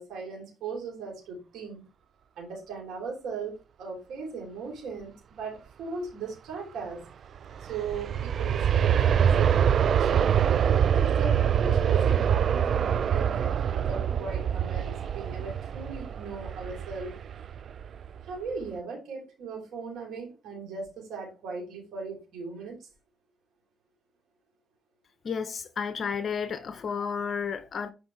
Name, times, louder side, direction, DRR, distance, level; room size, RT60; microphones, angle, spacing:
voice 1, 0.0-1.8 2.4-7.1 7.6-10.4 10.9-17.1 18.2-22.9, right 4 dB, 80° right, 3.0 m, -38 dB
Aircraft, 7.4-18.2 18.6-18.7, right 8 dB, 55° right, 0.3 m, -25 dB
voice 2, 25.2-27.9, left 6 dB, 50° left, 0.7 m, -32 dB
7.9 x 4.9 x 3.1 m
cardioid pair, 90°, 0 cm